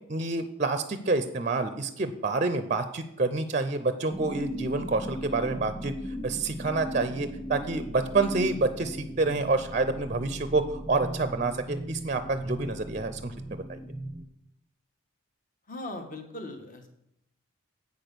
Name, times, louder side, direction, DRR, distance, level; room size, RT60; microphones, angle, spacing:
voice 1, 0.1-5.9 6.2-13.8, right 3 dB, 35° right, 10 dB, 0.5 m, -28 dB
sound 1, 4.1-14.2, equal, ahead, 0.8 m, -38 dB
voice 2, 15.7-16.9, left 2 dB, 40° left, 4 dB, 1.3 m, -39 dB
8.3 x 6.1 x 6.7 m, 0.79 s
head